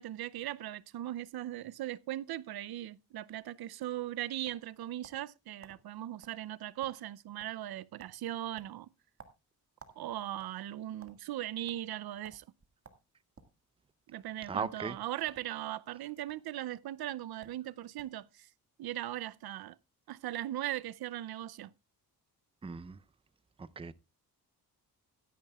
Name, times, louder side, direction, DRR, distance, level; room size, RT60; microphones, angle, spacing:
voice 1, 0.0-8.9 10.0-12.4 14.1-18.5 18.8-19.8 20.1-21.7, right 13 dB, 70° right, 0.5 m, -39 dB
sound 1, 4.4-5.3 5.6-5.8 6.2-6.4 6.7-7.1 7.4-7.7 8.0-8.2 8.6-10.0 10.3-11.2 11.7-11.8 12.2-12.4 12.8-13.6 14.3-14.5 15.2-15.5 15.8-16.4 17.1-17.2 17.4-17.6 18.0-18.2, right 5 dB, 35° right, 1.8 m, -56 dB
voice 2, 14.5-15.0 22.6-23.0 23.6-23.9, right 5 dB, 15° right, 0.5 m, -37 dB
16.0 x 12.5 x 2.3 m
wide cardioid pair, 130°, 38 cm